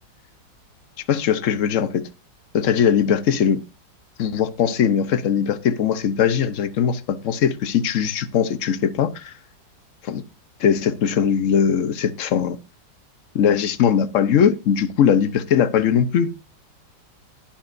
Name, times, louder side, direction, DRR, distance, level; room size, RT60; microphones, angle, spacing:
voice 1, 1.1-2.0 2.5-3.6 4.2-9.3 10.0-10.2 10.6-12.6 13.3-16.3, left 8 dB, 55° left, 1.0 m, -20 dB
20.0 x 7.2 x 2.6 m
omnidirectional pair, 1.9 m